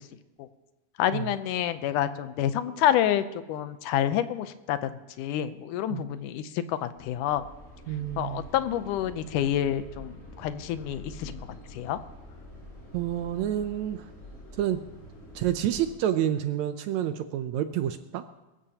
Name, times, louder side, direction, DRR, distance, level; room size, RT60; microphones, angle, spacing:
voice 1, 1.0-7.5 8.2-11.4 11.7-12.0, left 11 dB, 80° left, 12 dB, 2.2 m, -28 dB
sound 1, 6.9-15.9, equal, 20° left, 5.8 m, -46 dB
voice 2, 7.9-8.5 12.9-14.1 14.6-14.8 15.4-18.2, right 11 dB, 75° right, 10 dB, 1.8 m, -29 dB
23.0 x 14.0 x 2.9 m, 1.1 s
omnidirectional pair, 3.7 m